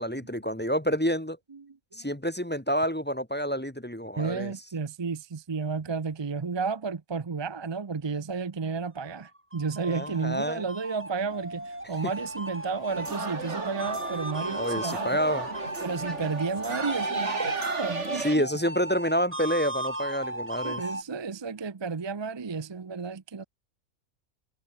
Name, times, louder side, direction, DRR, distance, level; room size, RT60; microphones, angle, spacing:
voice 1, 0.0-1.4 1.9-4.5 9.9-10.6 14.6-15.5 18.2-20.8, equal, 10° left, 1.2 m, -28 dB
voice 2, 1.5-2.0 4.2-15.2 15.8-18.4 20.6-23.4, right 5 dB, 30° right, 0.5 m, -32 dB
sound 1, 9.3-21.0, right 1 dB, 10° right, 2.1 m, -36 dB
sound 2, 11.2-17.1, left 2 dB, 60° left, 5.3 m, -54 dB
sound 3, 12.9-18.4, right 4 dB, 60° right, 2.9 m, -34 dB
omnidirectional pair, 1.4 m